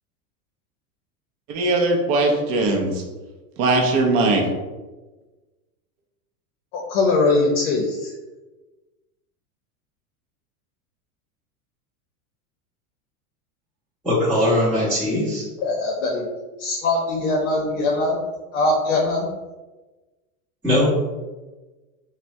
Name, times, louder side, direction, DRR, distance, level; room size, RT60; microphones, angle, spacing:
voice 1, 1.5-2.9 3.6-4.4, right 2 dB, 35° right, 1 dB, 0.4 m, -19 dB
voice 2, 6.7-8.1 15.6-16.2 16.6-18.2 18.5-19.3, left 2 dB, 70° left, -2 dB, 0.7 m, -21 dB
voice 3, 14.0-15.4 20.6-21.0, left 1 dB, 5° right, -14 dB, 0.8 m, -20 dB
3.2 x 2.1 x 2.6 m, 1.2 s
supercardioid pair, 140°, 43 cm